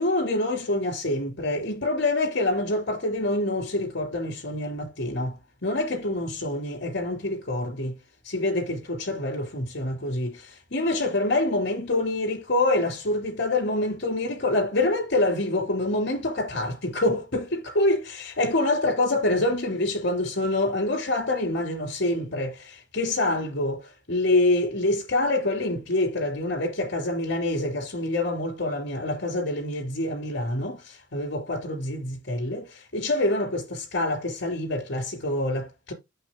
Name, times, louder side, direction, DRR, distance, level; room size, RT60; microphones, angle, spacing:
voice 1, 0.0-8.0 8.2-35.9, left 2 dB, 60° left, 2.7 m, -26 dB
6.4 x 5.7 x 3.8 m
head